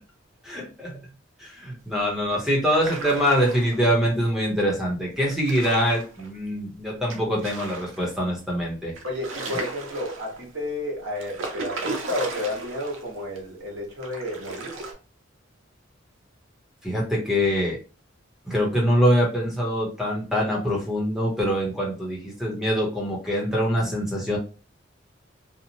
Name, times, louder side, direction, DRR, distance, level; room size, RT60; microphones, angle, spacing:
voice 1, 0.4-1.0 1.4-8.9 16.8-17.8 18.4-24.4, equal, ahead, -2 dB, 0.8 m, -24 dB
sound 1, 2.6-3.9 5.2-6.3 7.1-8.1 8.5-8.6 8.9-10.5 11.1-13.1 13.3-13.4 14.0-14.9, right 3 dB, 90° right, 0.6 m, -35 dB
voice 2, 9.0-14.8, left 1 dB, 65° right, -3 dB, 1.3 m, -31 dB
2.8 x 2.0 x 2.8 m, 0.34 s
head